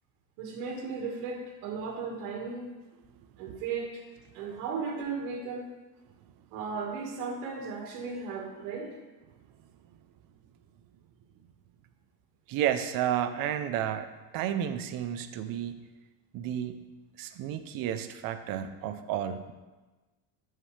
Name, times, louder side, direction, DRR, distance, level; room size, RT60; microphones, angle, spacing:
voice 1, 0.4-2.8 3.4-4.1 4.3-5.7 6.5-9.0, right 5 dB, 85° right, 1 dB, 1.9 m, -36 dB
voice 2, 12.5-14.1 14.3-15.8 16.3-16.8 17.2-19.5, right 10 dB, 50° right, 9 dB, 0.7 m, -31 dB
11.0 x 7.5 x 3.3 m, 1.2 s
cardioid pair, 140°, 43 cm